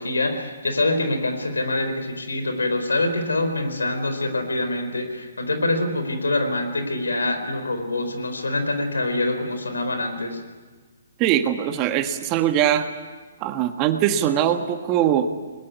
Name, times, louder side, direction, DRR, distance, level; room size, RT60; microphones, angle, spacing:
voice 1, 0.0-10.4, left 2 dB, 85° left, 7 dB, 4.4 m, -25 dB
voice 2, 11.2-12.9 13.4-15.3, right 10 dB, 30° right, 7 dB, 1.7 m, -21 dB
21.5 x 20.5 x 9.6 m, 1.4 s
figure-of-eight pair, 135°, 0 cm